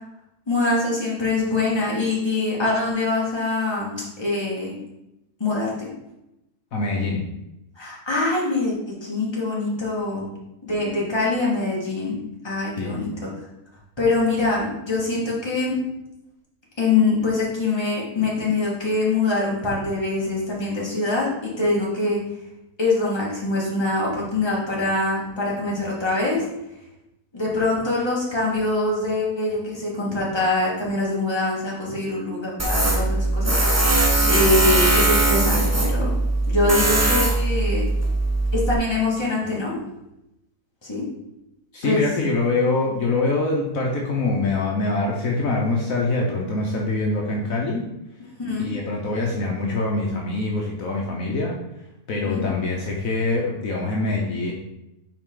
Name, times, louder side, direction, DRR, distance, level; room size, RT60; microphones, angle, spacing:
voice 1, 0.5-4.7 5.4-5.9 7.8-10.2 10.6-12.2 12.4-13.1 14.0-15.8 16.8-22.2 22.8-26.5 27.3-33.6 34.3-36.1 36.5-37.9 38.5-39.8 40.9-41.0 41.8-42.0 43.0-43.1 48.4-48.7 52.2-52.4, left 2 dB, 15° left, -5 dB, 2.0 m, -24 dB
voice 2, 6.7-7.3 12.8-13.1 41.7-47.9 48.6-51.6 52.1-54.5, left 3 dB, 65° left, -2 dB, 1.3 m, -24 dB
Tools, 32.6-38.7, right 2 dB, 15° right, 0.6 m, -20 dB
7.5 x 4.7 x 3.8 m, 0.89 s
omnidirectional pair, 1.6 m